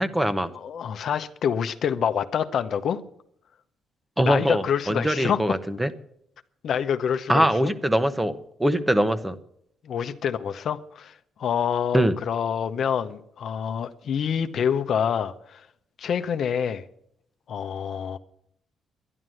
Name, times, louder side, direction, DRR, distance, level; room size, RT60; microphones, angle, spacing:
voice 1, 0.0-0.5 4.2-5.9 7.3-9.4 11.9-12.1, right 1 dB, 10° right, 1.0 m, -23 dB
voice 2, 0.5-3.0 4.2-5.4 6.6-7.7 9.8-15.7 16.0-16.8 17.5-18.2, left 8 dB, 65° left, 0.8 m, -27 dB
11.0 x 11.0 x 7.7 m
cardioid pair, 90°, 0 cm